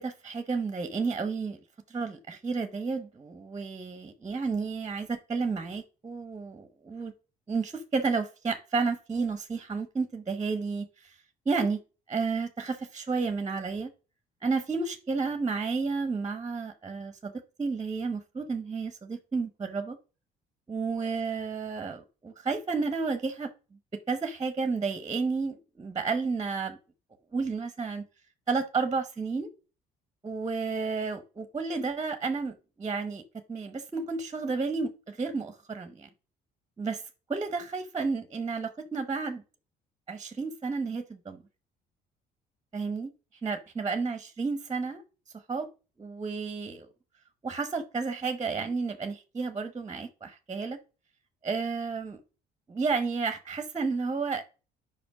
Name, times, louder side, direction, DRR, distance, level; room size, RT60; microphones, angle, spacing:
voice 1, 0.0-1.6 1.9-7.1 7.5-11.1 11.5-11.8 12.1-13.9 14.4-17.3 17.6-20.0 20.7-23.5 24.1-26.8 27.3-28.0 28.5-29.5 30.2-33.2 33.5-36.1 36.8-37.0 37.3-39.4 40.1-41.4 42.7-43.1 43.4-45.0 45.5-45.7 46.0-46.9 47.4-50.8 51.4-52.2 52.7-54.4, right 4 dB, 20° right, 9 dB, 0.9 m, -31 dB
5.3 x 5.1 x 4.7 m, 0.32 s
cardioid pair, 110°, 17 cm